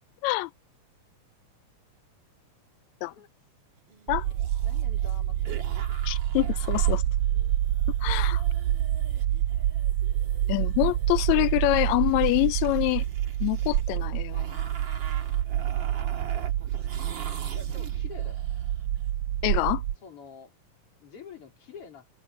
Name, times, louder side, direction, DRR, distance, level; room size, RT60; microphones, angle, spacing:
sound 1, 3.9-18.8, right 6 dB, 40° right, 2.2 m, -45 dB
sound 2, 4.1-19.9, right 12 dB, 85° right, 1.5 m, -27 dB
voice 1, 4.6-5.5 5.9-6.0 17.5-18.4 20.0-20.5 21.0-22.1, left 6 dB, 40° left, 4.8 m, -47 dB
voice 2, 6.0-7.0 8.0-8.4 10.5-13.0 13.4-14.6 19.4-19.8, left 20 dB, 85° left, 1.6 m, -25 dB
omnidirectional pair, 3.8 m